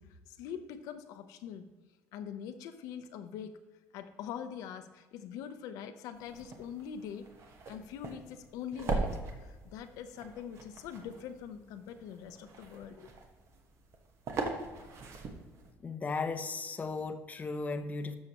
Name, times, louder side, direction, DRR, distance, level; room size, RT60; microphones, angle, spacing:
voice 1, 0.0-1.7 2.1-3.5 3.9-7.3 7.7-13.1, left 8 dB, 85° left, 9 dB, 0.7 m, -43 dB
sound 1, 6.1-15.7, right 3 dB, 55° right, 1.2 m, -41 dB
voice 2, 15.8-18.2, left 4 dB, 25° left, 9 dB, 0.7 m, -36 dB
12.0 x 6.5 x 3.0 m, 1.2 s
cardioid pair, 115°, 6 cm